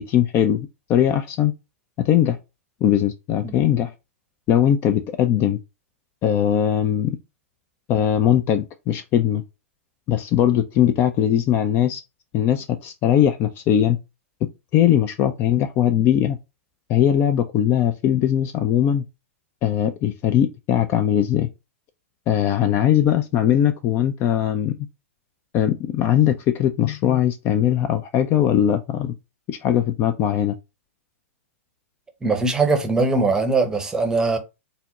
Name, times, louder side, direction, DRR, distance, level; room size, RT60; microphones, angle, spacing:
voice 1, 0.0-1.5 2.0-2.4 2.8-3.9 4.5-5.6 6.2-7.1 7.9-9.4 10.1-12.0 12.3-14.0 14.7-16.4 16.9-19.0 19.6-21.5 22.3-24.7 25.5-29.1 29.5-30.5, left 10 dB, 30° left, 0.4 m, -20 dB
voice 2, 32.2-34.4, right 3 dB, 10° right, 0.7 m, -21 dB
4.1 x 2.1 x 3.6 m
figure-of-eight pair, 110°, 8 cm